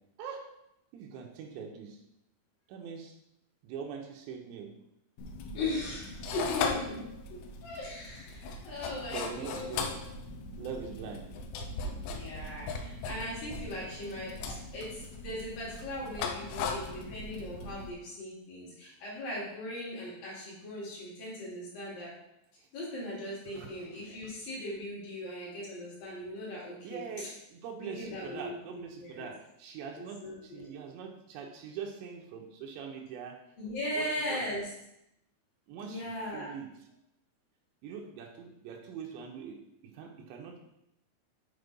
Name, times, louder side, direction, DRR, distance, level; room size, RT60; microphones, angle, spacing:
voice 1, 0.9-2.0 2.7-3.1 3.6-4.7 9.1-9.9 10.6-11.3 22.6-22.7 23.5-23.9 26.8-33.4 33.9-34.4 35.7-36.7 37.8-39.6 39.9-40.6, right 6 dB, 80° right, 1 dB, 3.0 m, -42 dB
sound 1, 5.2-17.9, left 4 dB, 85° left, 3.1 m, -38 dB
voice 2, 5.5-7.0 7.6-9.8 12.1-14.3 14.7-22.1 22.7-27.3 27.8-29.3 29.9-30.6 33.6-34.7 35.8-36.5, left 1 dB, 55° left, -6 dB, 3.8 m, -39 dB
8.1 x 4.3 x 5.3 m, 0.82 s
omnidirectional pair, 5.1 m